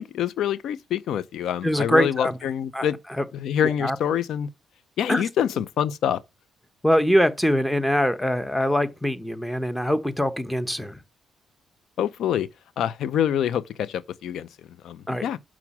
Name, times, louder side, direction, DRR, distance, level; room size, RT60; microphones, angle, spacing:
voice 1, 0.0-3.0 3.3-4.5 5.0-6.2 12.0-12.5 12.8-14.5 14.8-15.4, left 9 dB, 75° left, 0.6 m, -26 dB
voice 2, 1.6-2.4 2.7-3.2 3.6-4.0 5.1-5.2 6.8-11.0 15.1-15.3, equal, 5° left, 1.1 m, -23 dB
6.0 x 6.0 x 7.2 m
cardioid pair, 90°, 0 cm